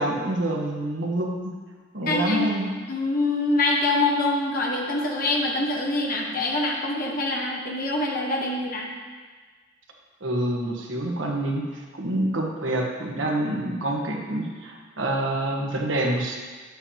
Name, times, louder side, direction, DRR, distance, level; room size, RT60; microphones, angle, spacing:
voice 1, 0.0-1.4 1.9-2.7 10.2-16.4, right 1 dB, 70° right, 0 dB, 1.3 m, -27 dB
voice 2, 2.1-2.5 2.9-8.9, left 2 dB, 45° left, -2 dB, 1.3 m, -25 dB
10.0 x 8.0 x 2.9 m, 1.5 s
head